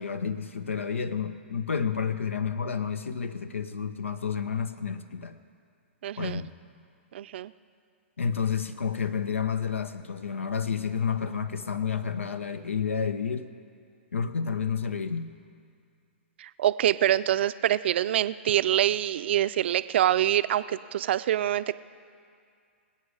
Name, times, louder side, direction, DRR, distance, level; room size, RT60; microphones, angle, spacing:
voice 1, 0.0-5.4 6.2-6.5 8.2-13.5 14.1-15.3, left 6 dB, 85° left, 11 dB, 0.7 m, -30 dB
voice 2, 6.0-6.4 7.1-7.5 16.4-21.7, right 12 dB, 60° right, 14 dB, 0.5 m, -25 dB
24.5 x 8.6 x 4.9 m, 2.3 s
hypercardioid pair, 125°, 7 cm